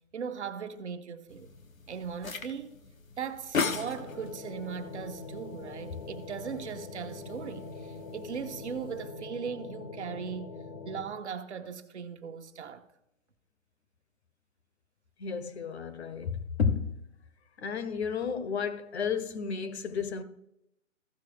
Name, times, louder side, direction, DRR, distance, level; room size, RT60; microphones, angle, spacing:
voice 1, 0.1-1.5 1.9-2.8 3.2-10.5 10.8-12.8, right 6 dB, 60° right, 1.1 m, -38 dB
sound 1, 1.3-9.1, left 5 dB, 85° left, 1.1 m, -39 dB
sound 2, 3.7-11.0, left 3 dB, 20° left, 0.5 m, -43 dB
voice 2, 15.2-17.0 17.6-20.2, left 6 dB, 55° left, 1.0 m, -32 dB
15.0 x 6.1 x 3.4 m
figure-of-eight pair, 145°, 40 cm